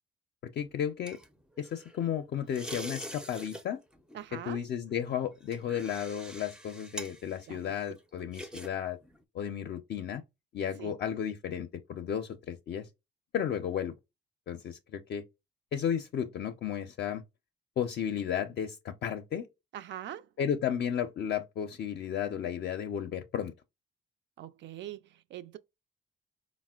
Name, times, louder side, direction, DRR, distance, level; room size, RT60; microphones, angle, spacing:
voice 1, 0.6-1.2 1.6-3.8 4.3-9.0 9.3-10.2 10.5-12.9 13.3-13.9 14.5-15.2 15.7-17.2 17.8-19.5 20.4-23.5, left 9 dB, 55° left, 0.4 m, -33 dB
sound 1, 0.6-2.1 2.5-3.6 3.9-4.2 4.9-8.7 9.0-9.2, right 1 dB, 5° right, 0.4 m, -45 dB
voice 2, 4.1-4.6 7.5-7.7 10.8-10.9 19.7-20.3 24.4-25.6, right 11 dB, 65° right, 0.4 m, -43 dB
4.1 x 2.0 x 2.3 m
cardioid pair, 90°, 20 cm